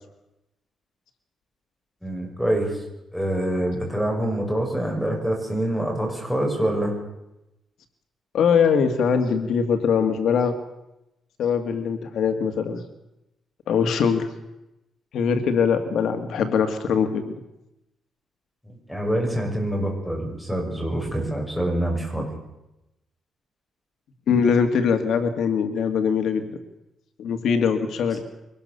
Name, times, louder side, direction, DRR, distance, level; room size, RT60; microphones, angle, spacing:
voice 1, 2.0-2.8 3.1-6.9 18.6-22.3, right 1 dB, ahead, 1 dB, 6.3 m, -25 dB
voice 2, 8.3-10.6 11.4-12.8 13.7-14.3 15.1-17.3 24.3-26.5 27.2-28.2, left 6 dB, 70° left, 7 dB, 2.0 m, -22 dB
24.0 x 19.5 x 6.9 m, 0.91 s
cardioid pair, 155°, 0 cm